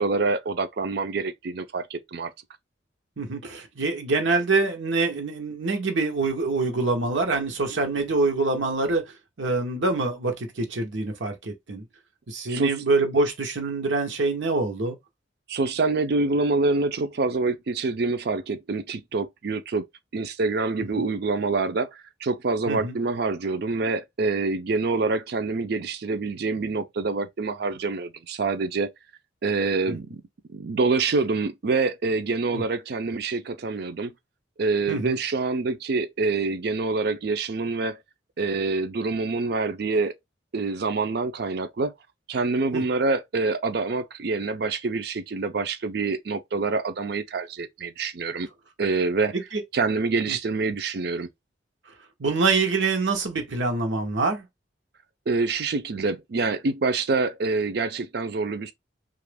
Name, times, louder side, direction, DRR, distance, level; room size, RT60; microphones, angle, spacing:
voice 1, 0.0-2.3 12.5-12.8 15.5-19.8 20.1-28.9 29.4-30.2 30.5-34.1 34.6-38.0 38.4-40.1 40.5-41.9 42.3-48.5 48.8-49.3 49.7-51.3 55.3-58.7, right 3 dB, 60° right, 0.5 m, -26 dB
voice 2, 3.2-9.0 9.4-11.8 12.3-15.0 20.9-21.0 22.7-22.9 29.9-30.0 32.5-32.6 34.9-35.2 42.7-42.8 49.5-49.6 52.2-54.4, right 3 dB, 90° right, 0.9 m, -25 dB
2.9 x 2.5 x 3.3 m
head